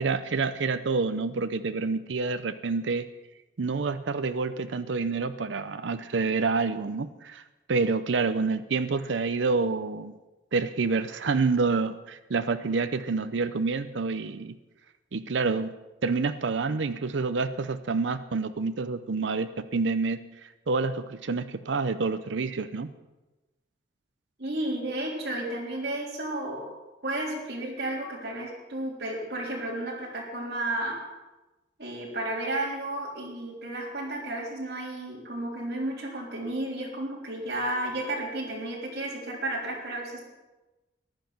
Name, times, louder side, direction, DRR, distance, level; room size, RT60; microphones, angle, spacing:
voice 1, 0.0-3.1 3.6-7.4 7.7-10.1 10.5-14.6 15.1-15.7 16.0-20.2 20.7-22.9, right 4 dB, 75° right, 11 dB, 0.6 m, -28 dB
voice 2, 24.4-26.7 27.0-31.0 31.8-40.2, right 1 dB, 55° right, -3 dB, 3.6 m, -32 dB
14.5 x 10.5 x 5.9 m, 1.1 s
head